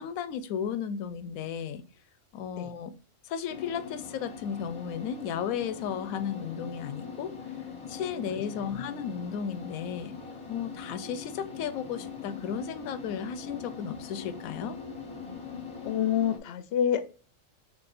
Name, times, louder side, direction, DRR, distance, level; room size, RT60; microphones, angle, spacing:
voice 1, 0.0-1.8 2.3-3.0 3.2-7.4 7.9-10.1 10.5-14.8, left 8 dB, 90° left, 1.0 m, -34 dB
sound 1, 3.5-16.4, left 5 dB, 25° left, 0.8 m, -42 dB
voice 2, 15.8-17.0, left 9 dB, 65° left, 0.7 m, -27 dB
5.9 x 3.3 x 2.5 m
omnidirectional pair, 1.4 m